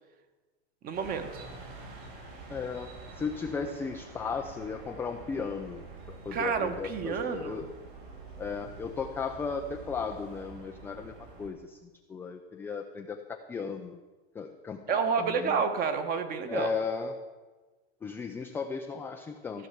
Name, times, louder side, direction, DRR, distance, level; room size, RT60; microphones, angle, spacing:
voice 1, 0.8-1.4 6.3-7.7 14.9-16.7, right 6 dB, 30° right, 8 dB, 1.2 m, -30 dB
sound 1, 0.9-11.5, right 3 dB, 50° right, 4.3 m, -47 dB
voice 2, 2.5-7.7 8.4-13.2 13.5-14.0 14.3-15.6 16.5-17.1 18.0-19.7, left 5 dB, 5° left, 3 dB, 0.3 m, -36 dB
14.5 x 5.8 x 8.1 m, 1.2 s
supercardioid pair, 145°, 32 cm